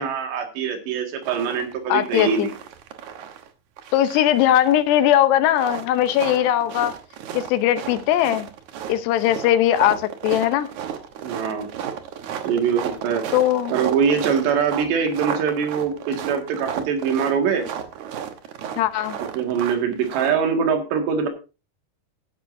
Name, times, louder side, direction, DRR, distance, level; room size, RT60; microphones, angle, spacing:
voice 1, 0.0-2.5 11.2-11.7 12.4-13.2 13.7-17.7 19.4-21.3, right 6 dB, 85° right, 4 dB, 4.2 m, -23 dB
sound 1, 1.2-1.7 2.0-3.5 3.8-5.0 5.5-20.3, right 9 dB, 65° right, 2.0 m, -33 dB
voice 2, 1.9-2.5 3.9-7.0 7.3-8.5 8.9-10.7 13.3-13.8 18.8-19.2, left 12 dB, 80° left, 11 dB, 3.0 m, -19 dB
15.0 x 10.5 x 2.7 m, 0.30 s
omnidirectional pair, 4.8 m